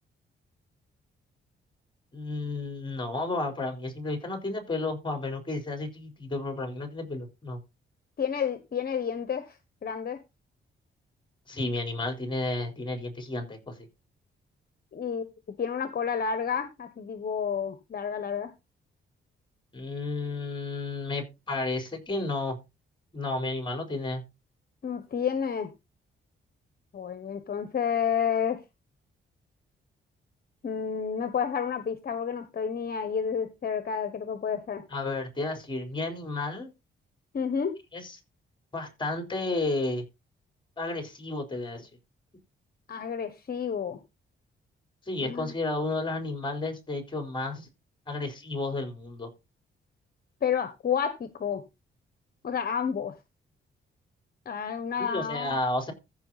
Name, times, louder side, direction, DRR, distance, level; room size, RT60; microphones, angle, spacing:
voice 1, 2.1-7.6 11.5-13.9 19.7-22.6 23.1-24.2 34.9-36.7 37.9-38.1 38.7-40.1 40.8-41.9 45.1-47.7 48.1-49.3 55.0-55.9, left 2 dB, 25° left, 5 dB, 4.2 m, -32 dB
voice 2, 8.2-9.6 9.8-10.2 14.9-15.3 15.6-18.5 24.8-25.7 26.9-28.6 30.6-34.8 37.3-37.7 42.9-44.0 45.2-45.5 50.4-51.6 52.4-53.2 54.4-55.6, left 7 dB, 50° left, 10 dB, 1.3 m, -30 dB
14.5 x 5.6 x 4.2 m, 0.25 s
cardioid pair, 105°, 20 cm